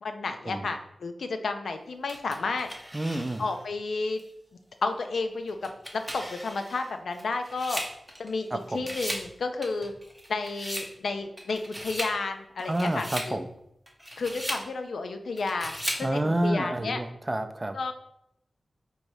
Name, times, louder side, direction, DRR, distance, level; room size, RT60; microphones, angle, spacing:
voice 1, 0.0-2.7 3.4-4.2 4.8-7.8 8.2-9.9 10.3-13.4 14.2-17.0 17.7-17.9, left 3 dB, 90° left, 7 dB, 0.4 m, -31 dB
sound 1, 2.1-3.6 4.2-4.3 5.5-8.5 8.7-9.3 9.6-10.9 11.4-12.2 12.6-13.3 13.9-14.7 15.4-16.1, equal, 5° left, 0.7 m, -37 dB
voice 2, 2.9-3.5 8.5-8.9 12.7-13.5 16.0-17.8, right 1 dB, 25° right, 7 dB, 0.4 m, -29 dB
4.6 x 3.0 x 2.7 m, 0.77 s
wide cardioid pair, 70°, 0 cm